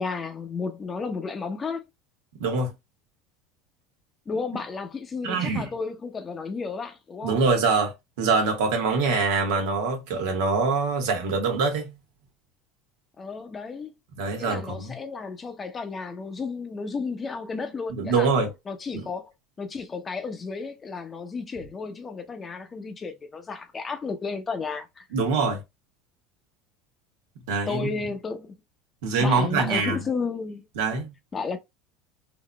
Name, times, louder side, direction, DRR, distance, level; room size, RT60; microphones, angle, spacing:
voice 1, 0.0-1.8 4.3-7.4 13.2-13.9 14.4-18.3 18.7-25.1 27.7-28.5 29.2-30.7 31.3-31.6, left 4 dB, 25° left, 0.8 m, -33 dB
voice 2, 2.4-2.7 5.2-5.7 7.2-11.9 14.2-14.9 17.9-18.5 18.9-19.0 25.1-25.6 27.5-27.9 29.0-30.0 30.8-31.1, right 4 dB, 80° right, 1.4 m, -24 dB
3.9 x 2.7 x 2.3 m
supercardioid pair, 110°, 0 cm